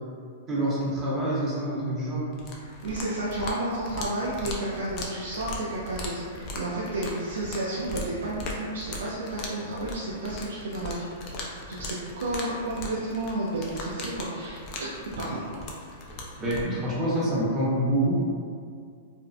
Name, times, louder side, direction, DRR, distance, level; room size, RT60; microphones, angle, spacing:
voice 1, 0.5-2.4 16.4-18.1, right 1 dB, 20° right, -7 dB, 0.7 m, -26 dB
sound 1, 2.3-16.6, left 1 dB, 35° left, 0.4 m, -39 dB
voice 2, 2.6-11.1 11.7-14.6 15.2-15.4, right 1 dB, 90° right, -7 dB, 0.4 m, -31 dB
2.5 x 2.0 x 2.5 m, 2.2 s
hypercardioid pair, 145°, 0 cm